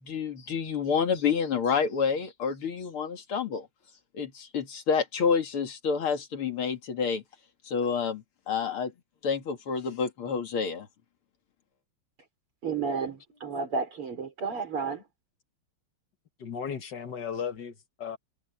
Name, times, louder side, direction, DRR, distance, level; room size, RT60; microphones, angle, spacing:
voice 1, 0.0-3.7 4.1-7.2 7.6-8.9 9.2-10.9, left 6 dB, 80° left, 3.1 m, -28 dB
voice 2, 12.6-15.0, right 5 dB, 80° right, 5.9 m, -32 dB
voice 3, 16.4-18.2, left 7 dB, 55° left, 2.1 m, -35 dB
omnidirectional pair, 2.3 m